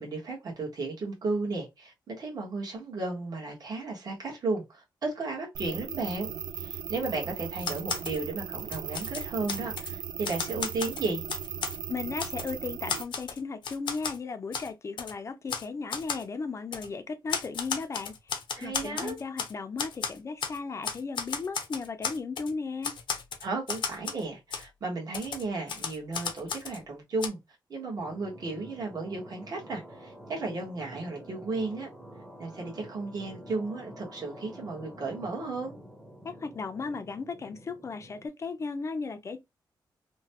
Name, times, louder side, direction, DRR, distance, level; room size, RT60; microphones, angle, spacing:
voice 1, 0.0-6.3 6.6-11.2 18.5-19.2 23.4-27.4 27.7-31.9 32.4-35.8, right 3 dB, 50° right, 1.2 m, -34 dB
sound 1, 5.5-13.0, right 8 dB, 70° right, 0.3 m, -38 dB
Typewriter, 7.6-8.2 8.6-9.9 10.2-11.8 12.2-12.5 12.9-14.2 14.5-14.7 15.0-15.1 15.5-15.7 15.9-16.2 16.7-16.9 17.3-19.5 19.8-20.6 20.8-22.5 22.8-24.2 24.5-24.6 25.1-26.8 27.2-27.3, left 6 dB, 80° left, 0.7 m, -34 dB
voice 2, 11.9-22.9 36.2-39.4, left 4 dB, 35° left, 0.4 m, -36 dB
sound 2, 28.0-38.3, equal, 5° right, 0.7 m, -48 dB
2.9 x 2.1 x 2.8 m
wide cardioid pair, 140°, 8 cm